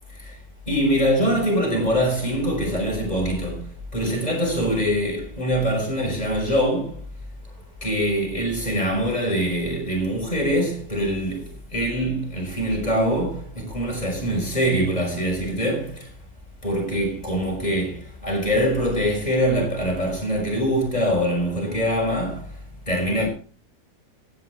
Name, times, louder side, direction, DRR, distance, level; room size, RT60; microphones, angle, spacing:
voice 1, 0.7-3.6 3.9-7.0 7.8-16.1 16.6-22.5 22.9-23.3, equal, 25° left, 5.9 m, -23 dB
15.0 x 10.5 x 4.8 m
omnidirectional pair, 1.8 m